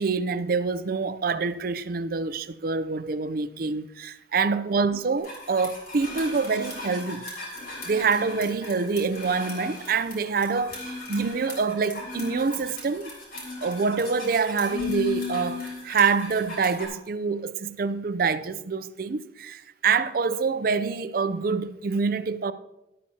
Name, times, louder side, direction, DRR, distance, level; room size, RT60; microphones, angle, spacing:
voice 1, 0.0-7.2 7.9-13.1 13.6-22.5, right 5 dB, 50° right, 0.5 m, -26 dB
sound 1, 5.2-16.9, left 4 dB, 55° left, 3.8 m, -36 dB
13.0 x 12.0 x 2.8 m
head